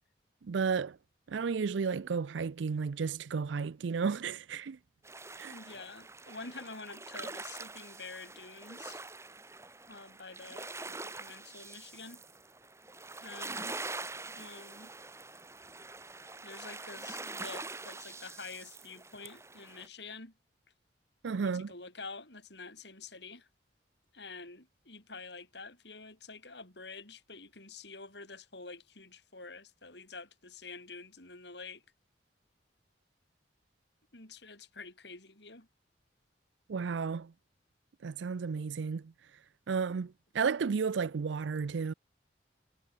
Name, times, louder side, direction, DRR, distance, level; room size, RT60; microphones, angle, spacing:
voice 1, 0.4-1.0 1.3-4.8 5.4-5.5 21.2-21.7 36.7-37.3 38.0-39.1 39.7-41.9, right 5 dB, 80° right, 0.5 m, -33 dB
sound 1, 5.0-19.9, right 3 dB, 15° right, 3.3 m, -44 dB
voice 2, 5.5-9.0 9.9-12.2 13.2-13.8 14.3-14.9 16.4-20.3 21.4-23.5 24.1-31.8 34.1-35.7, left 4 dB, 70° left, 6.9 m, -48 dB
head